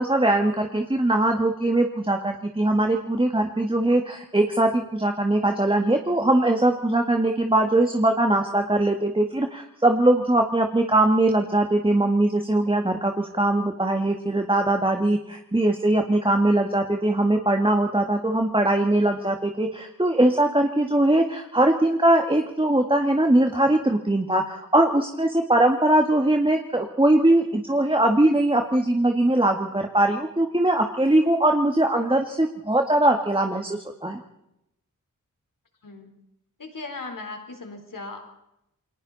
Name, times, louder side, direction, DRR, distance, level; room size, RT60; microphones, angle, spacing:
voice 1, 0.0-34.2, right 1 dB, 15° right, 3 dB, 1.9 m, -21 dB
voice 2, 36.6-38.2, left 3 dB, 75° left, 4 dB, 4.0 m, -37 dB
29.0 x 21.5 x 4.2 m, 0.84 s
cardioid pair, 55°, 33 cm